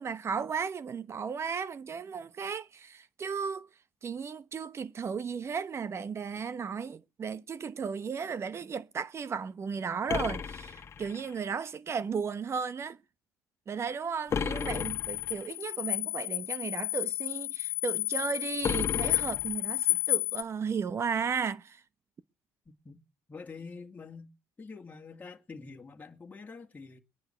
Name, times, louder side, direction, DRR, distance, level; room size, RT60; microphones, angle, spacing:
voice 1, 0.0-3.7 4.0-13.0 13.7-21.8, right 6 dB, 40° right, 1.0 m, -35 dB
sound 1, 10.1-11.5 14.3-15.5 18.6-20.0, left 6 dB, 40° left, 1.1 m, -34 dB
sound 2, 14.6-20.4, left 20 dB, 80° left, 0.7 m, -32 dB
voice 2, 23.3-24.3 24.6-27.0, left 4 dB, 20° left, 2.3 m, -46 dB
22.0 x 10.5 x 4.5 m
supercardioid pair, 85°, 7 cm